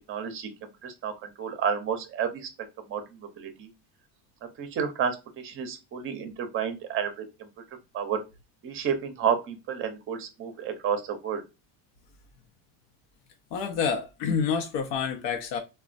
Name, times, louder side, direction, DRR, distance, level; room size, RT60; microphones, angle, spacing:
voice 1, 0.1-0.5 0.8-2.5 2.9-3.0 3.4-3.7 4.6-5.2 5.4-7.2 7.9-8.2 8.6-11.4, right 7 dB, 30° right, 0.5 m, -30 dB
voice 2, 13.5-15.6, left 6 dB, 85° left, 0.7 m, -28 dB
4.1 x 2.2 x 2.4 m
cardioid pair, 175°, 43 cm